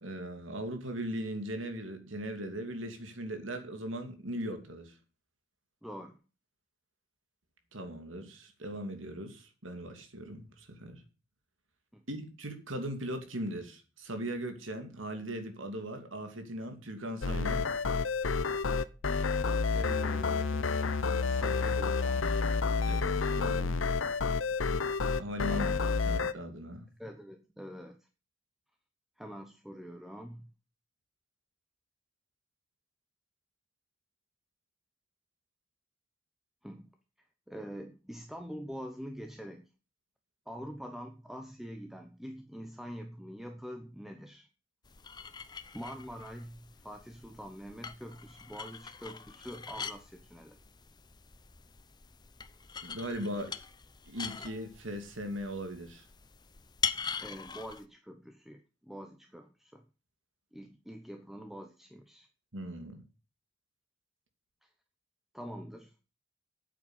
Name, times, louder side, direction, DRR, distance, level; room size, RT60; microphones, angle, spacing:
voice 1, 0.0-5.0 7.7-11.0 12.1-17.7 22.9-23.8 25.2-25.7 26.0-26.9 52.8-53.5 54.1-56.1 62.5-63.0, equal, 85° right, 2.8 m, -39 dB
voice 2, 5.8-6.2 11.9-12.0 19.7-20.7 21.2-22.3 24.4-24.9 25.5-25.8 27.0-28.1 29.2-30.5 36.6-36.9 37.5-39.7 40.5-44.5 45.7-50.6 57.2-59.8 60.5-62.3 64.6-64.7 65.3-65.9, equal, ahead, 0.9 m, -45 dB
sound 1, 17.2-26.3, left 4 dB, 90° left, 0.8 m, -29 dB
sound 2, 44.8-57.8, left 6 dB, 20° left, 0.7 m, -42 dB
9.3 x 7.7 x 8.1 m
head